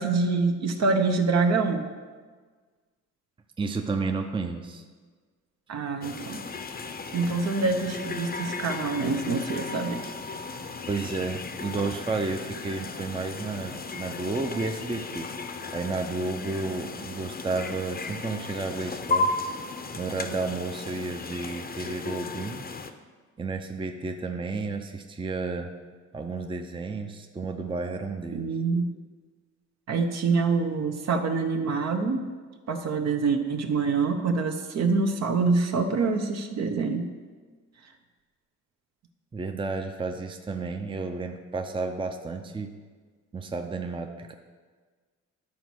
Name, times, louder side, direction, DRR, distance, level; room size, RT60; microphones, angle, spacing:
voice 1, 0.0-1.9 5.7-6.4 7.1-10.1 28.3-28.9 29.9-32.2 32.7-37.1, right 4 dB, 60° right, 5 dB, 1.0 m, -25 dB
voice 2, 3.6-4.8 10.9-15.3 15.7-19.3 19.9-22.7 23.4-25.7 26.1-28.5 39.3-42.7 43.3-44.3, right 3 dB, 15° right, 4 dB, 0.6 m, -32 dB
sound 1, 6.0-22.9, left 3 dB, 30° left, 0.7 m, -35 dB
11.5 x 4.2 x 6.2 m, 1.5 s
cardioid pair, 90°, 30 cm